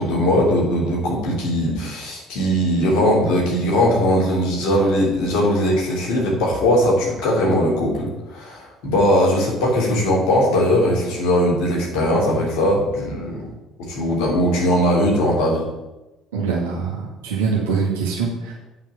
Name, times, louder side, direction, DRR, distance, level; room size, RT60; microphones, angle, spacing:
voice 1, 0.0-13.5 13.8-15.6, equal, 60° left, -3 dB, 3.2 m, -19 dB
voice 2, 16.3-18.5, right 5 dB, 70° right, -4 dB, 1.8 m, -23 dB
8.7 x 5.6 x 7.0 m, 1.0 s
figure-of-eight pair, 55°, 0 cm